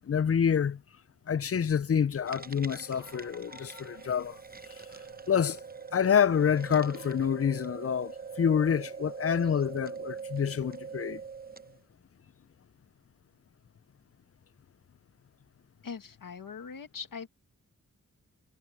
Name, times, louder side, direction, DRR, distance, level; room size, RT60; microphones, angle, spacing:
voice 1, 0.0-0.8 1.3-4.4 4.7-4.8 5.3-5.6 5.9-11.2, left 7 dB, 45° left, 0.5 m, -27 dB
sound 1, 2.2-11.8, right 5 dB, 30° right, 0.8 m, -43 dB
voice 2, 15.8-17.3, left 6 dB, 90° left, 2.0 m, -41 dB
wide cardioid pair, 65°, 32 cm